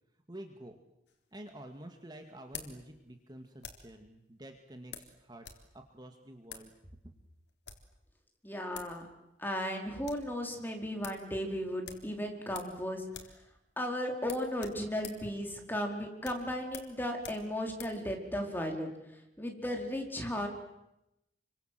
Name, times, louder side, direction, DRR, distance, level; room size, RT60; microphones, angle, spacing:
voice 1, 0.3-0.8 1.3-5.5 5.7-7.0, right 1 dB, 25° right, 5 dB, 2.2 m, -49 dB
sound 1, 1.1-4.0 4.9-5.7 5.9-6.0 6.4-6.7 7.4-7.9 8.5-8.6 8.7-9.0 9.3-9.4 9.7-10.3 10.6-10.7 11.0-11.2 11.8-12.8 13.1-13.4 13.7-13.8 14.2-18.0, left 7 dB, 70° left, 3.8 m, -48 dB
voice 2, 8.4-9.1 9.4-13.1 13.8-20.5, equal, 10° left, 3 dB, 4.6 m, -35 dB
29.5 x 25.5 x 7.8 m, 0.89 s
head